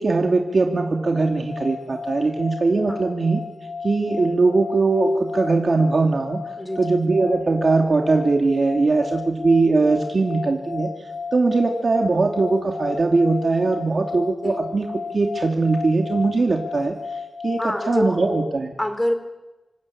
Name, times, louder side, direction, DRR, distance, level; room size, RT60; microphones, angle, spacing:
voice 1, 0.0-3.4 3.8-6.4 6.8-10.9 11.3-14.9 15.1-17.0 17.4-18.7, right 3 dB, 65° right, 2 dB, 2.7 m, -20 dB
sound 1, 0.8-18.6, left 5 dB, 80° left, 1.4 m, -34 dB
voice 2, 6.6-6.9 9.9-10.0 14.4-14.6 17.6-18.2 18.8-19.1, left 1 dB, 15° left, 8 dB, 4.4 m, -25 dB
27.0 x 24.5 x 8.7 m, 1.1 s
wide cardioid pair, 85°, 0 cm